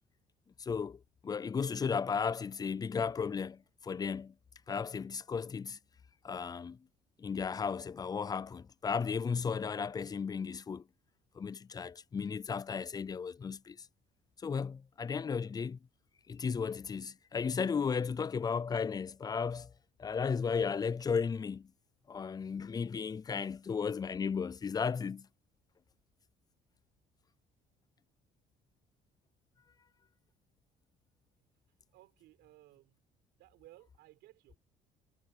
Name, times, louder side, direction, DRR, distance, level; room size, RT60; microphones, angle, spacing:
voice 1, 0.6-4.3 4.7-5.8 6.2-6.8 7.2-10.8 11.3-13.9 14.4-15.8 16.3-19.7 20.0-21.7 22.1-25.3, left 6 dB, 25° left, 0.4 m, -35 dB
voice 2, 31.9-33.0 33.4-34.6, right 17 dB, 85° right, 6.2 m, -59 dB
cardioid pair, 110°, 17 cm